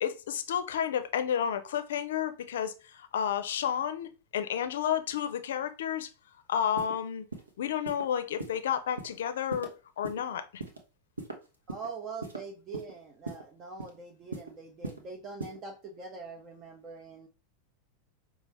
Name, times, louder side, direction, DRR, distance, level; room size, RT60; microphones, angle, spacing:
voice 1, 0.0-6.1 6.5-7.3 7.6-10.6, left 9 dB, 60° left, 0.5 m, -31 dB
sound 1, 6.8-6.9 7.3-7.5 7.9-8.0 8.4-8.6 9.0-9.1 9.5-9.7 10.0-10.2 10.6-10.8 11.2-11.9 12.2-12.4 12.7-12.9 13.3-13.4 13.8-14.0 14.3-14.5 14.8-15.0 15.4-15.6, right 3 dB, 80° right, 0.8 m, -38 dB
voice 2, 11.7-17.3, right 4 dB, 30° right, 0.7 m, -43 dB
5.3 x 2.4 x 3.2 m
figure-of-eight pair, 90°, 0 cm